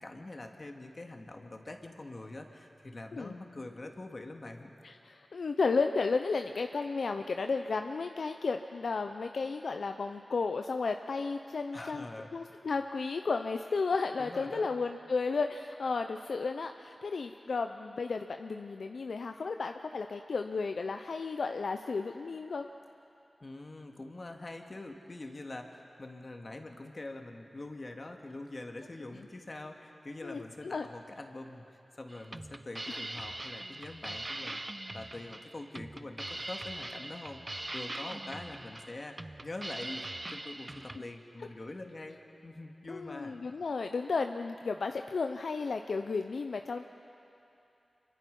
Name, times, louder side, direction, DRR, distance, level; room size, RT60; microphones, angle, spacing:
voice 1, 0.0-4.7 11.7-12.3 14.2-14.7 23.4-39.2 39.4-40.0 40.3-43.3, left 2 dB, 45° left, 3 dB, 2.2 m, -44 dB
voice 2, 4.8-12.1 12.3-22.7 29.1-29.3 30.2-30.9 32.9-33.0 41.0-41.1 41.4-41.5 42.9-46.8, left 4 dB, 75° left, 6 dB, 0.6 m, -33 dB
sound 1, 32.1-41.0, right 2 dB, 30° right, 0.8 m, -42 dB
26.0 x 23.5 x 5.5 m, 2.7 s
cardioid pair, 40°, 0 cm